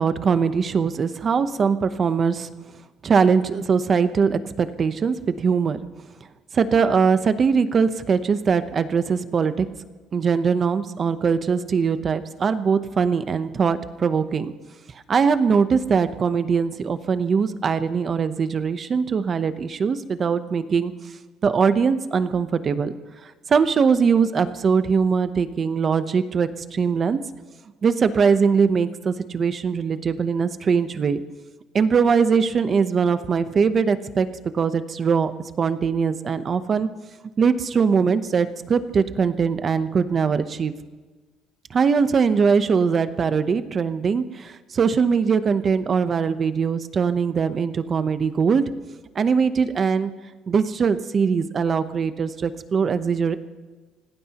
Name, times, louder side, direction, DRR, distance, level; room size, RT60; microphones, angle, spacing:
voice 1, 0.0-2.5 3.0-5.8 6.5-9.7 10.1-14.5 15.1-20.9 21.4-22.9 23.5-27.2 27.8-31.2 31.7-34.3 34.5-35.3 35.6-36.9 37.4-40.7 41.7-48.6 49.1-50.1 50.5-53.4, right 6 dB, 30° right, 11 dB, 0.8 m, -21 dB
26.5 x 18.5 x 3.0 m, 1.3 s
cardioid pair, 150°, 0 cm